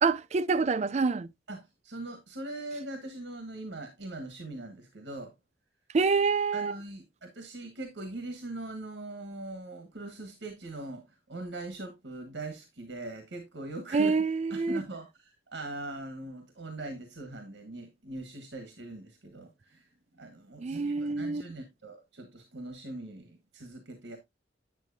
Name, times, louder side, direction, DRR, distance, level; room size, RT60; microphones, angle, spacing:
voice 1, 0.0-1.3 5.9-6.8 13.9-14.8 20.6-21.4, right 4 dB, 40° right, 0.4 m, -26 dB
voice 2, 1.5-5.3 6.5-14.1 14.5-19.9 20.1-24.2, right 2 dB, 85° right, 1.3 m, -41 dB
9.0 x 7.2 x 2.6 m
head